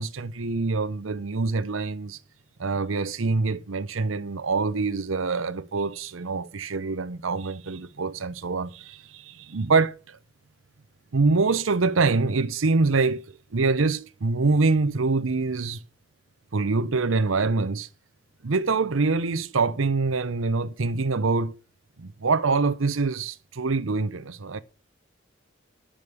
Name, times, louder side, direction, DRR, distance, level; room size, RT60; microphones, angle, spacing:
voice 1, 0.0-2.2 2.6-10.2 11.1-13.2 13.5-15.8 16.5-17.9 18.4-21.5 22.0-24.6, right 3 dB, 85° right, 0.8 m, -25 dB
11.0 x 5.2 x 8.2 m
head